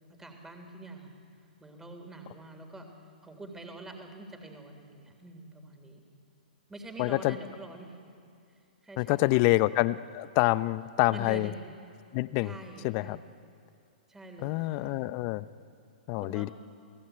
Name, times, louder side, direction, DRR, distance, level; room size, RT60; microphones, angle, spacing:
voice 1, 0.1-1.1 1.6-2.9 3.2-6.0 6.7-8.0 8.8-9.4 11.1-11.6 12.4-13.2 14.1-15.2 16.2-16.5, right 2 dB, 10° right, 4 dB, 3.4 m, -45 dB
voice 2, 7.0-7.4 9.0-11.5 12.1-12.5 12.8-13.2 14.4-15.5 16.1-16.5, left 19 dB, 40° left, 16 dB, 0.8 m, -27 dB
29.5 x 18.0 x 9.2 m, 2.4 s
hypercardioid pair, 120°, 5 cm